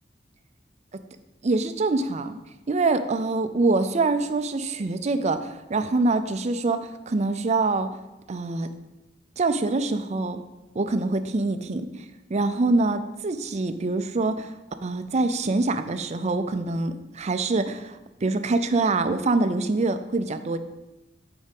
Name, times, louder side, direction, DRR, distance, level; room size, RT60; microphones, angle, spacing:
voice 1, 1.4-2.3 2.7-7.9 8.3-8.7 9.4-10.4 10.8-12.0 12.3-14.5 14.8-20.6, right 3 dB, 40° right, 10 dB, 0.5 m, -25 dB
6.5 x 4.9 x 5.3 m, 1.0 s
head